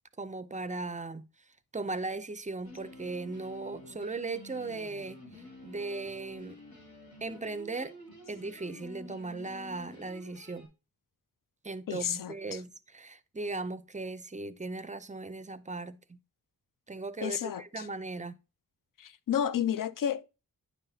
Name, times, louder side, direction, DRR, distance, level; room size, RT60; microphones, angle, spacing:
voice 1, 0.2-1.2 1.7-6.6 7.2-7.9 8.3-10.7 11.6-16.2 16.9-18.4, right 3 dB, 20° right, 0.4 m, -38 dB
sound 1, 2.6-10.7, left 2 dB, 85° left, 2.4 m, -50 dB
voice 2, 11.9-12.3 17.2-17.8 19.0-20.2, left 9 dB, 65° left, 0.5 m, -31 dB
9.4 x 5.7 x 2.7 m
wide cardioid pair, 120°, 35 cm